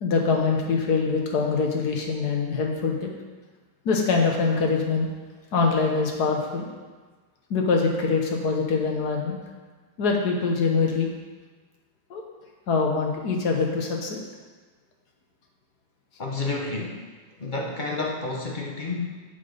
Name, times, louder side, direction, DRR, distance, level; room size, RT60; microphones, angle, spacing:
voice 1, 0.0-3.1 3.9-5.1 5.5-6.7 7.5-9.4 10.0-11.1 12.1-12.2 12.7-14.2, left 4 dB, 75° left, 1 dB, 1.7 m, -24 dB
voice 2, 16.2-17.0 17.4-19.2, left 3 dB, 35° left, -1 dB, 0.9 m, -30 dB
8.2 x 6.0 x 5.2 m, 1.3 s
omnidirectional pair, 1.7 m